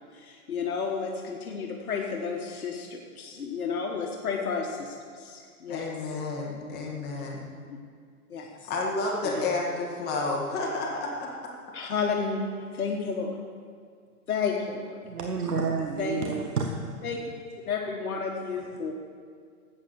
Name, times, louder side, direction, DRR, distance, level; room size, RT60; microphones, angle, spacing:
voice 1, 0.1-5.9 7.7-7.8 8.3-8.7 9.2-9.5 11.7-13.3 14.3-14.9 16.0-16.2 17.0-17.3 17.7-18.9, left 5 dB, 70° left, 0 dB, 1.5 m, -32 dB
voice 2, 5.7-7.5 8.7-11.3, left 3 dB, 20° left, -2 dB, 2.0 m, -30 dB
voice 3, 15.0-16.9, right 4 dB, 85° right, 2 dB, 1.2 m, -29 dB
12.0 x 8.4 x 6.7 m, 2.1 s
hypercardioid pair, 135°, 45 cm